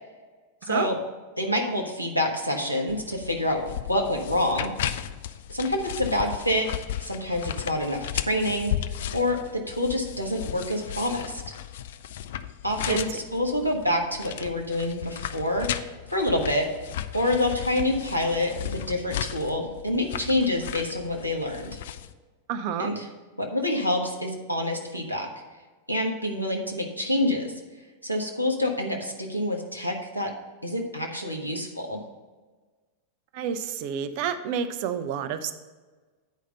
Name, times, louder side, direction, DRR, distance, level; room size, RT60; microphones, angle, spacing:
voice 1, 0.6-1.0 1.4-4.7 5.5-8.7 9.1-11.4 12.6-16.7 17.1-21.8 22.8-23.1 23.4-25.3 25.9-27.5 28.0-30.3 30.6-32.0, left 1 dB, 90° left, 1 dB, 1.3 m, -27 dB
sound 1, 2.9-22.1, left 11 dB, 55° left, 0.4 m, -35 dB
voice 2, 22.5-22.9 33.3-35.5, right 7 dB, 45° right, 10 dB, 0.6 m, -29 dB
9.1 x 5.0 x 5.5 m, 1.3 s
figure-of-eight pair, 90°, 0 cm